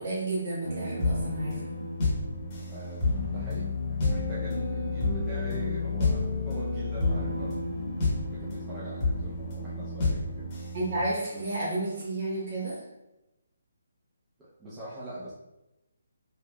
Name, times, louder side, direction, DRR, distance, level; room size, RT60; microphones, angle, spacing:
voice 1, 0.0-1.6 10.7-12.8, right 2 dB, 45° right, -6 dB, 1.5 m, -31 dB
sound 1, 0.6-11.4 12.0-12.1, left 3 dB, 25° left, 0.9 m, -30 dB
voice 2, 2.7-3.1 3.3-7.6 8.2-10.5 14.4-15.3, right 1 dB, 15° right, -9 dB, 0.5 m, -43 dB
3.3 x 2.6 x 2.3 m, 0.95 s
hypercardioid pair, 155°, 0 cm